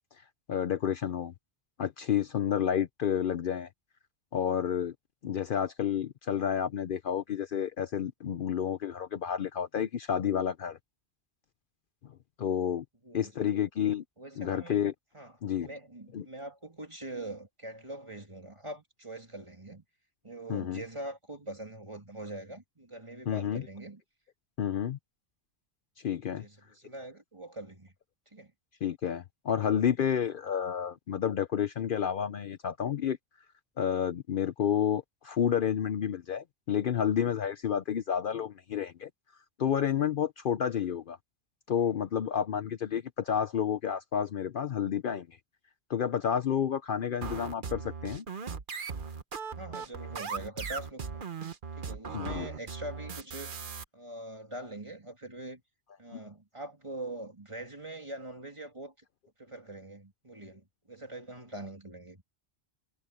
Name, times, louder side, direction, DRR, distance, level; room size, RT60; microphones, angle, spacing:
voice 1, 0.5-1.3 1.8-3.7 4.3-4.9 5.2-10.8 12.4-12.8 13.1-14.0 14.4-14.9 15.4-15.7 16.1-16.2 20.5-20.8 23.3-23.6 24.6-25.0 26.0-26.4 28.8-33.2 33.8-39.1 39.6-41.2 41.7-45.4 45.9-48.2 52.1-52.5, left 8 dB, 60° left, 0.8 m, -30 dB
voice 2, 13.0-13.5 14.2-14.9 15.1-19.8 20.2-24.0 26.4-27.9 28.3-28.5 49.5-51.2 51.8-53.5 53.9-55.6 56.0-58.9 59.4-62.2, right 1 dB, 30° right, 3.0 m, -43 dB
sound 1, 47.2-53.8, right 5 dB, 55° right, 1.2 m, -38 dB
omnidirectional pair, 1.1 m